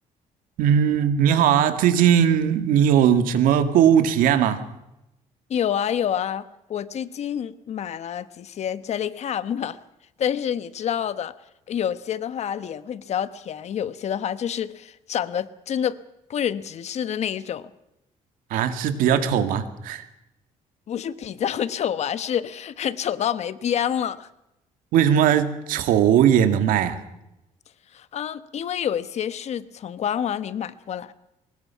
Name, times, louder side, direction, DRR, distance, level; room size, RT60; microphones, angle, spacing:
voice 1, 0.6-4.6 18.5-20.1 24.9-27.0, right 9 dB, 90° right, 9 dB, 2.0 m, -19 dB
voice 2, 5.5-9.8 10.2-11.3 11.7-16.0 16.3-17.7 20.9-24.3 27.9-31.1, left 9 dB, 55° left, 14 dB, 1.1 m, -28 dB
24.5 x 20.5 x 5.8 m, 0.87 s
cardioid pair, 125°, 14 cm